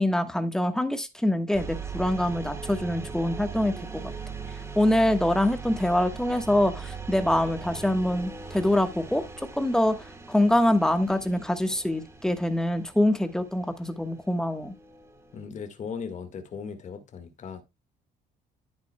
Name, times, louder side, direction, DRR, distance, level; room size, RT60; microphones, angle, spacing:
voice 1, 0.0-4.0 4.7-14.7, left 1 dB, 5° left, 1.2 m, -25 dB
sound 1, 1.5-15.4, right 5 dB, 15° right, 1.6 m, -40 dB
voice 2, 15.3-17.6, left 6 dB, 45° left, 1.7 m, -37 dB
10.5 x 9.0 x 2.2 m
cardioid pair, 110°, 17 cm